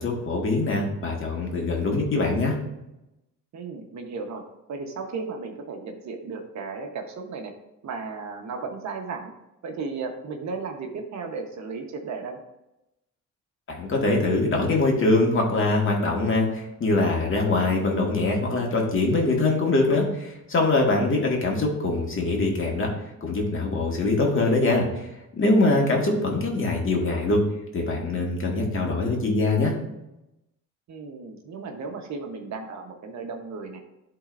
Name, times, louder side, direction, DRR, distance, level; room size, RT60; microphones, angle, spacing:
voice 1, 0.0-2.6 13.7-22.9 23.2-25.1 25.3-27.4 27.7-29.7, left 2 dB, 45° left, 0 dB, 1.9 m, -23 dB
voice 2, 3.5-4.4 4.7-7.5 7.8-9.3 9.6-12.4 30.9-33.8, right 4 dB, 65° right, 4 dB, 1.2 m, -35 dB
11.0 x 3.9 x 2.6 m, 0.92 s
cardioid pair, 90°, 30 cm